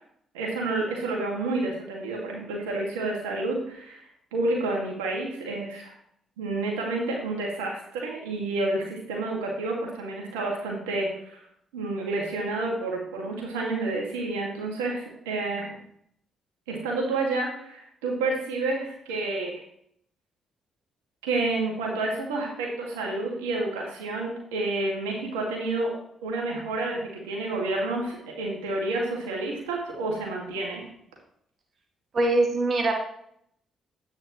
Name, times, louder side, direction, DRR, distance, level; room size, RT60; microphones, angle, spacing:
voice 1, 0.3-4.0 4.3-5.9 6.4-11.1 11.7-15.7 16.7-19.6 21.2-25.9 26.2-30.9, right 2 dB, 90° right, -1 dB, 2.1 m, -29 dB
voice 2, 32.1-32.9, right 2 dB, 50° right, 3 dB, 1.5 m, -22 dB
10.5 x 8.9 x 3.1 m, 0.69 s
hypercardioid pair, 45°, 0 cm